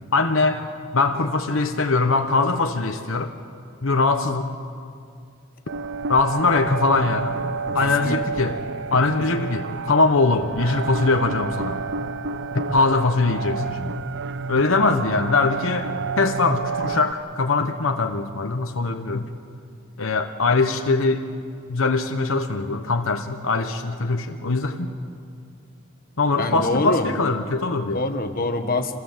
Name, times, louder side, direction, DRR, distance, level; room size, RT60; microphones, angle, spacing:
voice 1, 0.1-0.7 0.9-3.3 3.8-4.5 6.1-7.4 7.7-8.6 8.9-11.8 12.5-14.0 14.5-15.9 16.2-19.3 20.0-21.3 21.7-24.9 26.2-28.0, left 3 dB, 75° left, 5 dB, 1.1 m, -22 dB
sound 1, 5.7-17.1, right 4 dB, 60° right, 0.6 m, -30 dB
voice 2, 7.7-8.2 26.4-27.1 27.9-29.0, left 2 dB, 45° left, 5 dB, 1.4 m, -25 dB
27.5 x 17.0 x 7.4 m, 2.3 s
head